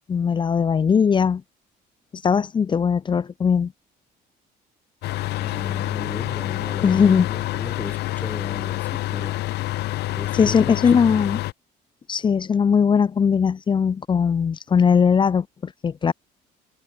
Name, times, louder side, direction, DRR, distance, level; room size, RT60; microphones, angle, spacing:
voice 1, 0.1-1.4 2.2-3.7 6.8-7.3 10.3-11.4 12.1-16.1, left 6 dB, 30° left, 0.5 m, -19 dB
sound 1, 5.0-11.5, left 17 dB, 80° left, 1.5 m, -27 dB
voice 2, 5.4-9.4 10.2-11.2, left 1 dB, 10° left, 4.1 m, -37 dB
cardioid pair, 110°, 17 cm